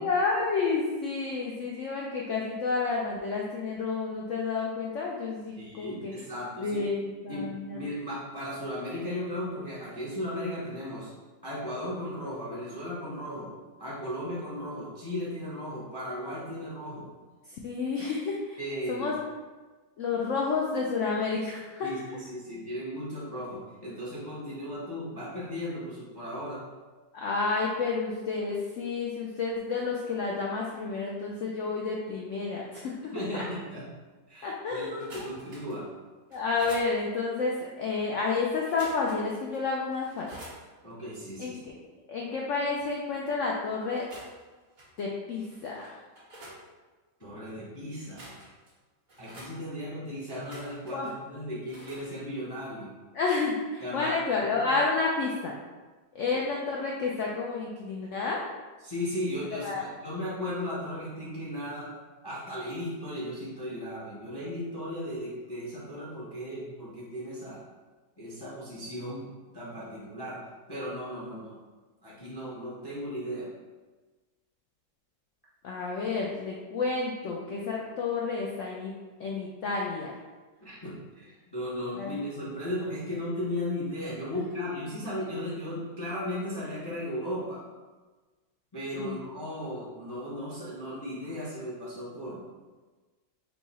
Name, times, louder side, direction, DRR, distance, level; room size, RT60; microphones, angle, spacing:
voice 1, 0.0-6.1 6.6-7.8 17.5-18.6 18.9-19.1 20.0-22.2 27.1-33.4 34.4-35.3 36.3-40.3 41.4-41.7 42.1-44.1 45.0-45.9 50.9-51.1 53.1-55.5 56.1-58.4 59.5-59.8 75.6-78.9 79.2-80.2 82.0-82.2 84.3-84.6 89.0-89.2, left 4 dB, 80° left, -2 dB, 0.6 m, -30 dB
voice 2, 5.6-6.8 7.3-11.1 11.4-13.5 13.8-17.1 18.6-19.1 21.8-26.6 33.1-33.8 34.3-35.9 40.8-41.6 47.2-48.4 49.2-52.9 53.8-54.1 54.6-54.7 56.3-56.4 58.8-61.9 62.2-67.6 68.2-70.4 70.7-71.6 72.0-73.5 80.6-87.6 88.7-92.4, equal, 35° left, -6 dB, 0.4 m, -36 dB
sound 1, 34.8-35.8 36.3-36.9 38.6-39.3 39.5-39.6 40.0-40.6 43.8-44.4 44.8-45.0 45.5-46.6 47.9-48.7 49.1-49.5 50.3-51.1 51.7-52.0, right 1 dB, 55° right, 1.7 m, -48 dB
4.6 x 2.3 x 4.0 m, 1.3 s
omnidirectional pair, 1.8 m